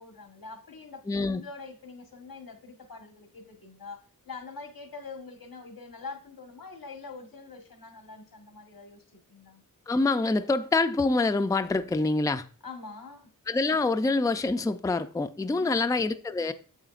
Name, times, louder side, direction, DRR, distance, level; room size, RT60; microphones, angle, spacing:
voice 1, 0.0-9.6 12.6-13.3 15.6-15.9, left 4 dB, 85° left, 1.4 m, -44 dB
voice 2, 1.1-1.4 9.9-12.4 13.5-16.5, left 3 dB, 10° left, 0.4 m, -26 dB
8.9 x 7.8 x 2.5 m
wide cardioid pair, 85°, 34 cm